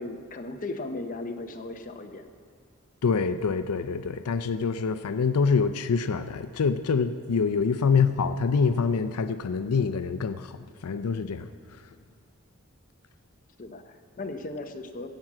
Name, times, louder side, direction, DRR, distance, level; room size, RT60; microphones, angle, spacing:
voice 1, 0.0-2.3 13.6-15.1, left 2 dB, 40° left, 5 dB, 0.8 m, -37 dB
voice 2, 3.0-10.6 10.8-11.5, left 5 dB, 90° left, 10 dB, 0.5 m, -25 dB
16.5 x 6.1 x 7.4 m, 2.2 s
head